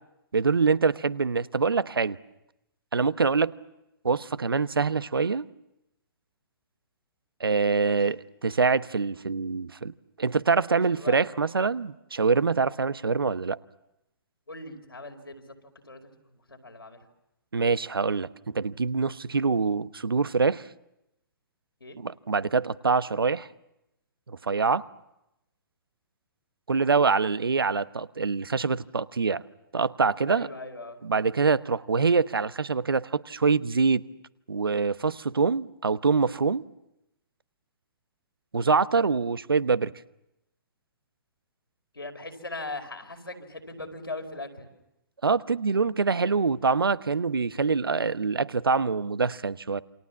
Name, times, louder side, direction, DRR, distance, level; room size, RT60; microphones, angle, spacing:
voice 1, 0.3-2.2 2.9-3.5 4.0-5.4 7.4-9.9 10.2-13.6 17.5-20.7 22.0-23.5 24.3-24.8 26.7-29.4 29.7-30.5 31.0-34.0 34.5-36.6 38.5-39.9 45.2-49.8, right 4 dB, 75° right, 16 dB, 1.0 m, -25 dB
voice 2, 10.7-11.4 14.5-15.5 15.8-17.0 21.8-22.0 30.3-31.0 41.9-44.7, left 2 dB, 85° left, 5 dB, 4.8 m, -39 dB
28.5 x 27.5 x 7.2 m, 0.88 s
figure-of-eight pair, 120°, 12 cm